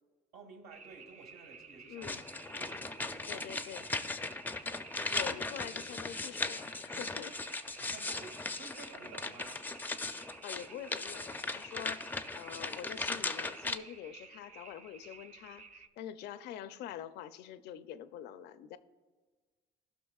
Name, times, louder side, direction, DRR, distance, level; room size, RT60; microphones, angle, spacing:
voice 1, 0.3-2.1 2.5-3.5 3.8-3.9 7.8-9.7, right 4 dB, 70° right, 1.6 m, -53 dB
sound 1, 0.7-15.9, right 5 dB, 45° right, 0.6 m, -54 dB
voice 2, 1.9-2.2 3.3-3.9 4.9-7.4 10.1-18.8, left 10 dB, 80° left, 0.5 m, -46 dB
sound 2, 2.0-13.8, left 3 dB, 10° left, 0.4 m, -38 dB
16.0 x 5.9 x 2.3 m
cardioid pair, 110°, 17 cm